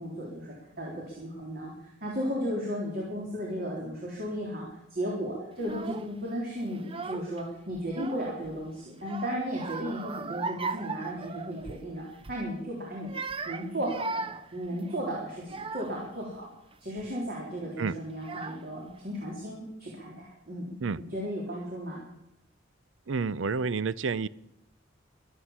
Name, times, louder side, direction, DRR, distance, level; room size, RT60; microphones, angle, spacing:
voice 1, 0.0-4.7 4.9-13.2 13.5-14.2 14.5-16.5 16.8-20.7 21.0-22.0, equal, 55° right, -3 dB, 3.7 m, -35 dB
Child speech kid speaking / Crying sobbing, 5.6-6.1 6.7-7.4 7.7-8.6 9.0-11.9 12.2-12.5 13.0-16.1 16.7-17.1 17.9-18.0 18.2-18.9, right 4 dB, 30° right, 0.6 m, -38 dB
voice 2, 23.1-24.3, right 4 dB, 85° right, 19 dB, 0.6 m, -29 dB
24.0 x 8.1 x 7.3 m, 0.84 s
head